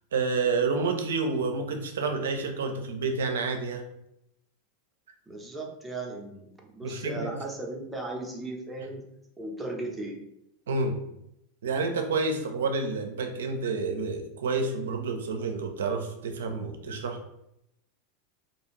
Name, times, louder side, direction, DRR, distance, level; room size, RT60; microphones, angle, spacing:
voice 1, 0.1-3.8 6.8-7.3 10.7-11.0 11.6-17.2, right 4 dB, 80° right, 5 dB, 0.5 m, -29 dB
voice 2, 5.3-9.1 9.4-10.2, right 2 dB, 10° right, -1 dB, 0.7 m, -36 dB
2.5 x 2.3 x 3.1 m, 0.81 s
hypercardioid pair, 95°, 0 cm